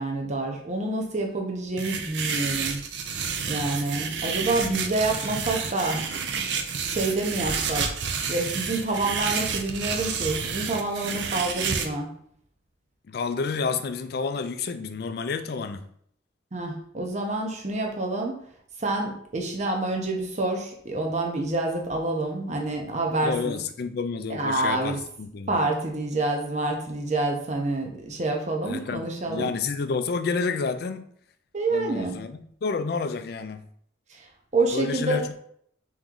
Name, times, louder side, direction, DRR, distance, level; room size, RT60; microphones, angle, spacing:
voice 1, 0.0-2.8 3.5-6.0 6.8-7.9 8.3-12.1 16.5-18.3 18.8-23.6 24.3-25.0 25.5-29.5 31.5-32.2 34.5-35.2, right 2 dB, 40° right, 0.7 m, -27 dB
sound 1, 1.8-11.9, right 6 dB, 65° right, 0.5 m, -30 dB
voice 2, 13.1-15.9 23.2-25.6 28.7-31.1 31.7-33.6 34.7-35.4, left 4 dB, 55° left, 0.3 m, -30 dB
3.6 x 3.0 x 3.7 m
head